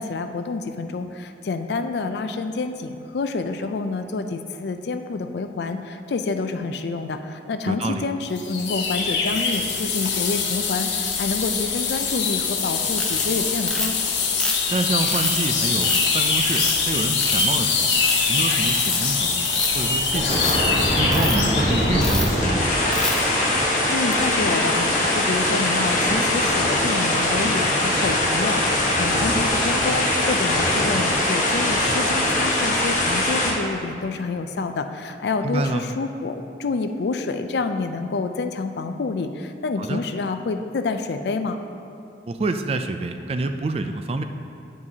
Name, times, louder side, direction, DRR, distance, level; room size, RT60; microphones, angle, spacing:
voice 1, 0.0-14.0 23.9-41.6, left 3 dB, 70° left, 8 dB, 0.4 m, -28 dB
voice 2, 7.7-8.1 14.7-17.9 18.3-20.4 21.0-22.8 35.4-35.8 39.8-40.0 42.3-44.2, right 3 dB, 35° right, 8 dB, 0.3 m, -27 dB
sound 1, 8.4-22.2, left 5 dB, 90° left, 0.9 m, -23 dB
Ratchet pawl, 13.0-13.2 13.7-14.0 14.4-15.3 15.8-16.0 16.5-16.8 17.2-17.5 17.9-18.1 18.6-19.0 19.4-19.8 20.2-20.5 21.1-21.4 22.0-22.3 22.9-23.2, left 1 dB, 5° left, 0.7 m, -26 dB
sound 2, 19.6-33.5, left 1 dB, 45° left, 1.1 m, -22 dB
9.4 x 7.3 x 2.8 m, 2.6 s
head